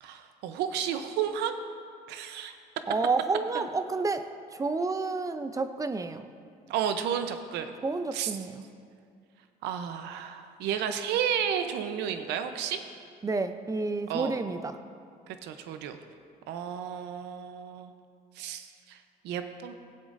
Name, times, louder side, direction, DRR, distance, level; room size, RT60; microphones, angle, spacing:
voice 1, 0.0-1.5 2.1-2.5 3.5-3.6 6.7-7.7 8.1-8.3 9.6-12.8 14.1-14.3 15.3-16.0 16.5-17.9 18.4-19.7, right 8 dB, 85° right, 8 dB, 0.6 m, -32 dB
voice 2, 2.9-6.3 7.8-8.6 13.2-14.8, right 3 dB, 20° right, 10 dB, 0.4 m, -30 dB
17.0 x 7.8 x 2.5 m, 2.3 s
cardioid pair, 110°, 17 cm